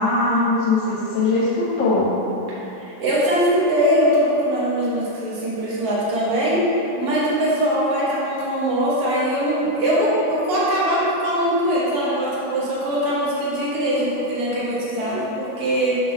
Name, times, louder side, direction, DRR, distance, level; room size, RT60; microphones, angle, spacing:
voice 1, 0.0-2.1, left 2 dB, 65° left, -7 dB, 1.8 m, -20 dB
voice 2, 2.5-6.6 7.0-16.0, equal, 50° right, -7 dB, 1.8 m, -21 dB
6.3 x 3.9 x 5.8 m, 3.0 s
omnidirectional pair, 2.2 m